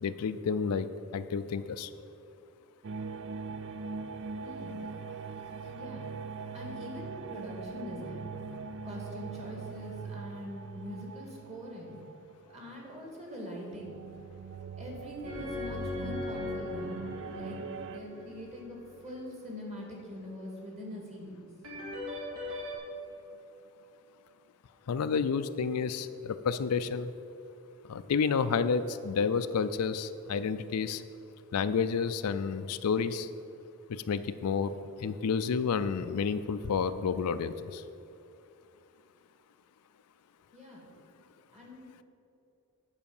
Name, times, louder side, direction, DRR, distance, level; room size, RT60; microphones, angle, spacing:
voice 1, 0.0-0.9 1.1-1.9 24.9-27.1 27.9-31.0 31.5-33.3 33.9-34.7 35.0-37.8, left 5 dB, 90° left, 12 dB, 0.4 m, -30 dB
sound 1, 2.8-12.9 13.5-18.0, right 5 dB, 60° right, 0.4 m, -42 dB
voice 2, 4.4-4.8 5.7-6.1 6.5-8.3 8.8-12.0 12.5-14.0 14.8-17.0 17.3-17.6 17.9-18.8 19.0-21.4 40.5-40.9 41.5-42.0, left 1 dB, 30° right, -2 dB, 2.2 m, -43 dB
sound 2, 15.2-19.3 21.6-22.8, left 2 dB, 80° right, 2.5 m, -39 dB
9.5 x 4.9 x 7.1 m, 2.7 s
head